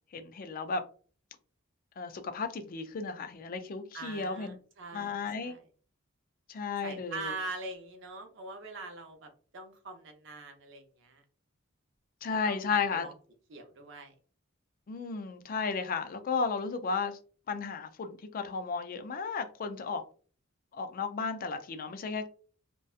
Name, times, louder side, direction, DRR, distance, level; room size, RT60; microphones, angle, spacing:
voice 1, 0.1-0.8 2.0-4.6 4.9-5.6 6.5-7.4 12.2-13.1 14.9-17.2 17.5-20.0 20.7-22.3, left 5 dB, 45° left, 0.3 m, -34 dB
voice 2, 3.9-5.6 6.8-11.2 12.5-13.1 13.5-14.1, right 3 dB, 60° right, 0.6 m, -43 dB
2.6 x 2.2 x 2.3 m
head